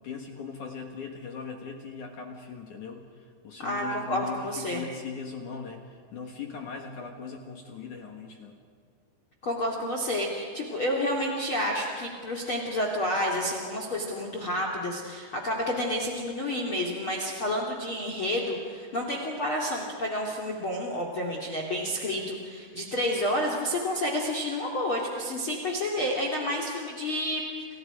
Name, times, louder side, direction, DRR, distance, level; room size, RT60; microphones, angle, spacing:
voice 1, 0.0-8.6, left 5 dB, 60° left, 3 dB, 2.3 m, -39 dB
voice 2, 3.6-4.8 9.4-27.7, left 1 dB, 35° left, 1 dB, 2.6 m, -30 dB
30.0 x 29.5 x 5.1 m, 2.2 s
omnidirectional pair, 5.3 m